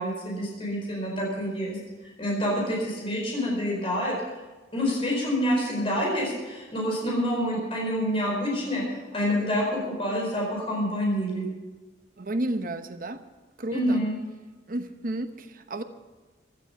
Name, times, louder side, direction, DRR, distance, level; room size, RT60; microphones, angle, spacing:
voice 1, 0.0-1.8 2.2-4.2 4.7-8.8 9.1-11.4 13.7-14.1, equal, 30° left, -2 dB, 4.5 m, -27 dB
voice 2, 12.2-13.2 13.6-14.0 14.7-15.8, right 1 dB, 50° right, 8 dB, 0.9 m, -32 dB
16.0 x 12.5 x 5.7 m, 1.3 s
head